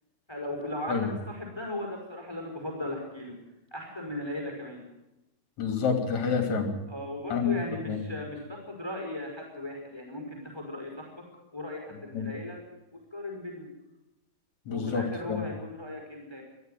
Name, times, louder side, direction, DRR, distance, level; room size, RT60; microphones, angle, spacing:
voice 1, 0.3-3.4 3.7-4.8 6.9-11.1 11.5-12.6 12.9-13.7 14.7-16.4, left 1 dB, 5° left, 1 dB, 4.5 m, -37 dB
voice 2, 5.6-6.7 7.3-7.5 7.9-8.0 12.1-12.3 14.7-15.0 15.3-15.4, left 6 dB, 40° left, 5 dB, 3.7 m, -28 dB
21.5 x 13.5 x 9.3 m, 0.98 s
omnidirectional pair, 5.5 m